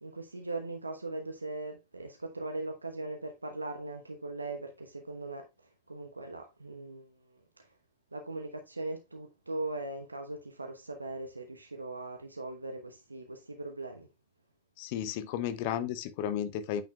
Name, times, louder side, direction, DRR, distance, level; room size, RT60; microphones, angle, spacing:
voice 1, 0.0-5.5 5.9-7.1 8.1-14.1, right 2 dB, 80° right, 1.0 m, -39 dB
voice 2, 14.8-16.8, left 10 dB, 50° left, 0.9 m, -33 dB
8.7 x 5.9 x 2.3 m
figure-of-eight pair, 90°, 0 cm